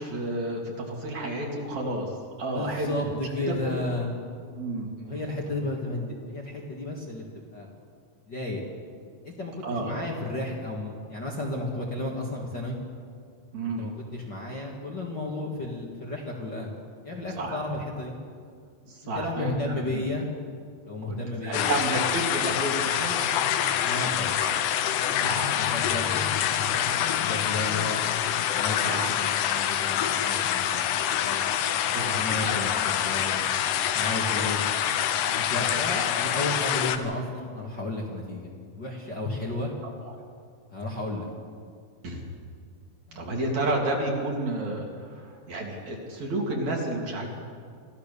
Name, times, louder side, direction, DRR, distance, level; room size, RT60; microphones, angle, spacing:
voice 1, 0.0-2.1 2.4-3.8 4.6-5.2 9.6-9.9 13.5-13.9 17.4-17.6 18.9-20.0 21.1-23.5 24.4-24.5 25.2-25.5 28.8-29.1 31.9-32.3 34.4-34.5 40.1-40.2 42.0-42.2 43.2-47.3, right 2 dB, 55° right, 0 dB, 3.9 m, -31 dB
voice 2, 2.5-4.2 5.0-7.3 7.5-7.7 8.3-8.6 9.2-12.8 13.6-16.8 17.0-18.2 19.0-20.3 20.8-21.7 23.8-24.4 25.5-28.0 28.5-31.5 32.1-33.4 33.8-34.6 35.3-39.7 40.7-41.3 43.1-43.2, left 2 dB, 35° left, -2 dB, 2.2 m, -33 dB
sound 1, 21.5-37.0, left 10 dB, 75° left, 2.3 m, -26 dB
26.0 x 14.5 x 6.9 m, 2.2 s
omnidirectional pair, 4.0 m